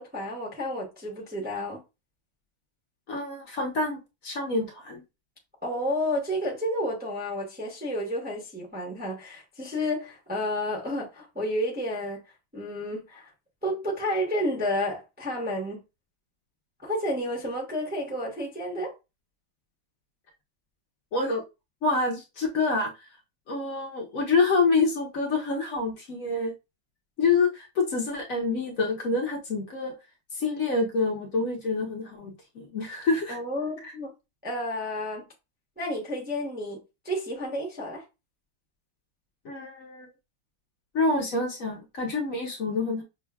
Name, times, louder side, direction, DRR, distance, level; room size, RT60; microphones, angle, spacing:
voice 1, 0.0-1.8 5.6-12.2 12.5-13.3 13.6-15.8 16.8-18.9 33.3-34.1 34.4-35.3 35.8-36.8 37.0-38.0, left 1 dB, 10° right, 0.6 m, -31 dB
voice 2, 3.1-5.0 21.1-21.4 21.8-23.1 23.5-26.5 27.2-29.9 30.3-33.4 33.8-33.9 39.4-40.1 40.9-43.0, left 3 dB, 55° left, 1.0 m, -27 dB
6.1 x 2.2 x 2.2 m
omnidirectional pair, 1.9 m